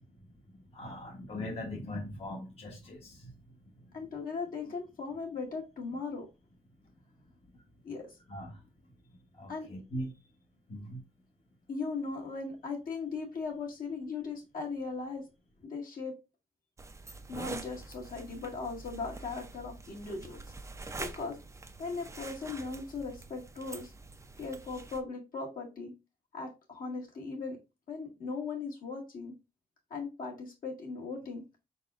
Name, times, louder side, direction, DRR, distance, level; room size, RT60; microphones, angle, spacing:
voice 1, 0.7-3.3 7.5-7.6 8.3-8.6 9.4-10.1 10.7-11.0, left 1 dB, 40° left, 1.0 m, -40 dB
voice 2, 3.9-6.3 7.8-8.2 9.5-9.7 11.7-15.3 15.6-16.2 17.3-20.4 21.0-21.4 21.8-23.9 24.4-25.9 26.3-27.6 27.9-29.3 29.9-31.4, left 4 dB, 60° left, 1.8 m, -38 dB
sound 1, 16.8-25.0, right 3 dB, 20° right, 0.5 m, -45 dB
4.6 x 4.1 x 2.4 m
wide cardioid pair, 135°, 16 cm